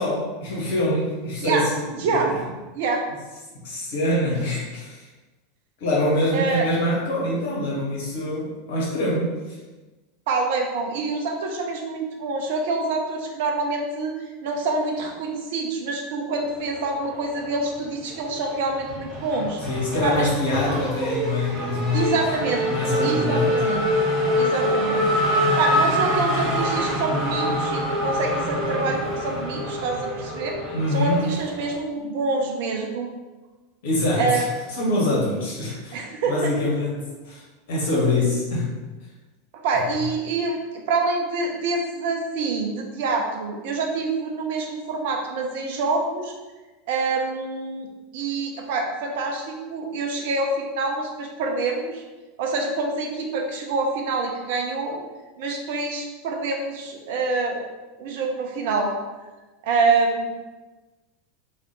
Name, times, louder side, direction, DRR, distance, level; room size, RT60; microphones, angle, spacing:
voice 1, 0.0-2.2 3.5-5.0 5.8-9.3 19.7-22.2 22.6-23.6 30.7-31.2 33.8-34.5 34.7-37.4 37.7-38.7 39.9-40.0, left 1 dB, 55° left, -5 dB, 1.4 m, -24 dB
voice 2, 1.9-2.3 2.7-3.0 6.3-6.6 10.3-14.1 14.4-19.6 20.0-20.3 21.9-22.7 23.0-23.8 24.4-25.1 25.6-30.6 30.9-33.1 34.2-34.5 35.9-36.5 39.5-40.6 40.9-46.3 46.9-47.9 48.1-52.0 52.4-55.0 55.4-57.6 58.0-58.9 59.6-60.3, right 3 dB, 55° right, 2 dB, 0.6 m, -26 dB
Race car auto racing / Accelerating revving vroom, 16.8-17.8 18.1-31.8, equal, 5° right, 1.4 m, -25 dB
3.4 x 2.5 x 3.9 m, 1.2 s
figure-of-eight pair, 85°, 0 cm